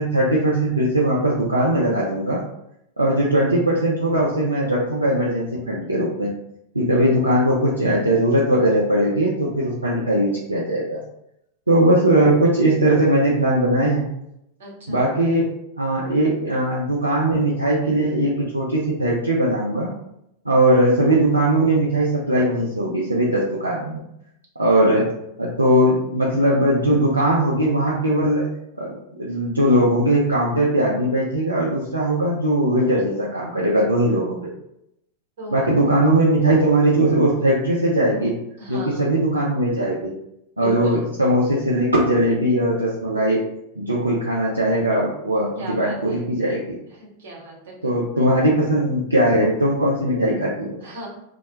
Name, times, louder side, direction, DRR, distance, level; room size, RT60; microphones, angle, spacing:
voice 1, 0.0-2.4 3.0-6.3 6.7-11.0 11.7-14.0 14.9-15.5 15.8-19.9 20.5-24.0 24.6-25.1 25.4-28.5 28.8-34.5 35.5-38.4 38.7-40.1 40.6-43.4 43.8-46.8 47.8-50.8, right 1 dB, 85° right, -5 dB, 0.4 m, -19 dB
voice 2, 14.6-15.0 35.4-35.7 38.6-39.0 40.6-41.0 45.6-46.2 46.9-48.3 50.8-51.1, right 1 dB, 60° right, -3 dB, 0.9 m, -37 dB
2.1 x 2.1 x 2.8 m, 0.80 s
figure-of-eight pair, 90°, 0 cm